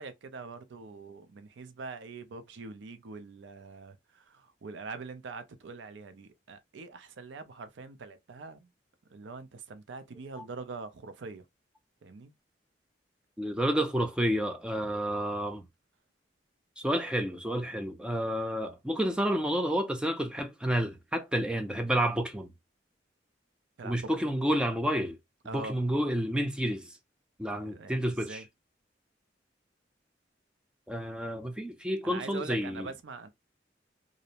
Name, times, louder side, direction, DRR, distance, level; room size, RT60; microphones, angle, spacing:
voice 1, 0.0-8.7 9.1-11.4 12.0-12.3 23.8-23.9 24.2-24.4 25.5-25.8 27.6-28.4 32.0-33.3, right 4 dB, 85° right, 0.5 m, -43 dB
voice 2, 13.4-15.7 16.8-22.5 23.8-25.2 25.5-27.0 27.4-28.4 30.9-32.9, equal, 5° right, 0.3 m, -30 dB
2.5 x 2.0 x 2.7 m
head